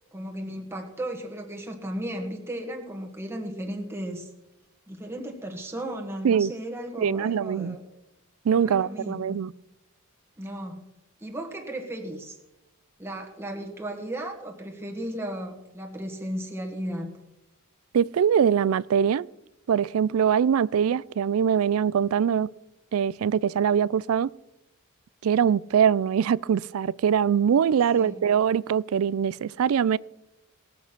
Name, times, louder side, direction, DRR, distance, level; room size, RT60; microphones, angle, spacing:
voice 1, 0.1-4.3 4.9-7.8 8.5-9.4 10.4-10.9 11.2-12.4 13.0-17.1 27.9-28.2, right 1 dB, 10° right, 1.6 m, -35 dB
voice 2, 7.0-7.8 8.5-9.5 17.9-19.3 19.7-22.5 22.9-24.3 25.2-30.0, right 8 dB, 70° right, 0.3 m, -23 dB
19.0 x 7.0 x 6.0 m
head